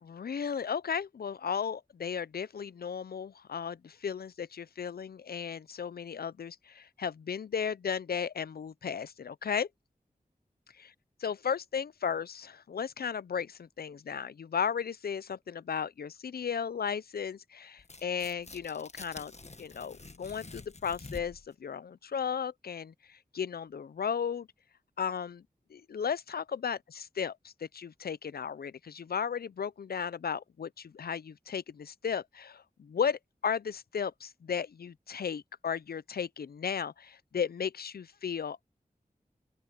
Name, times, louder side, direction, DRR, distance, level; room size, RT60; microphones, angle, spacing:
voice 1, 0.0-9.7 11.2-19.3 19.6-24.5 25.0-25.4 25.7-38.6, left 7 dB, 85° left, 0.5 m, -35 dB
Tearing, 17.8-21.5, left 3 dB, 45° left, 1.4 m, -48 dB
open air
cardioid pair, 40°, 16 cm